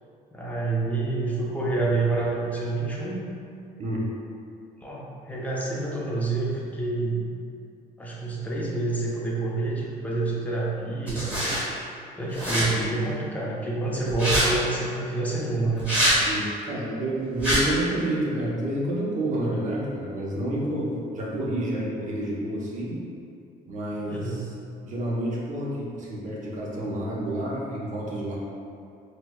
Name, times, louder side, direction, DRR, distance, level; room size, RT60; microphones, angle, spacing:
voice 1, 0.3-3.2 4.8-7.2 8.0-11.5 12.2-15.9 24.1-24.4, right 3 dB, 10° left, -5 dB, 0.6 m, -28 dB
sound 1, 11.1-11.6 12.3-12.7 14.1-14.5 15.8-16.2 17.4-17.6, equal, 10° right, 1.3 m, -23 dB
voice 2, 16.2-23.0 23.7-24.5 24.8-28.4, right 1 dB, 45° right, -5 dB, 0.7 m, -29 dB
4.4 x 2.1 x 2.2 m, 2.4 s
cardioid pair, 110°, 17 cm